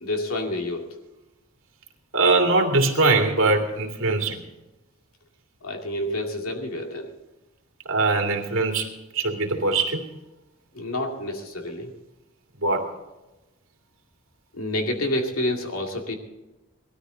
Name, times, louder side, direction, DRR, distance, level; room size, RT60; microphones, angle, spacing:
voice 1, 0.0-1.0 5.6-7.1 10.7-11.9 14.5-16.2, left 1 dB, 90° left, 2 dB, 2.4 m, -28 dB
voice 2, 2.1-4.4 6.1-6.2 7.9-8.9 9.1-10.0 12.6-12.9, right 3 dB, 65° right, 2 dB, 2.5 m, -21 dB
19.5 x 13.0 x 3.9 m, 1.0 s
head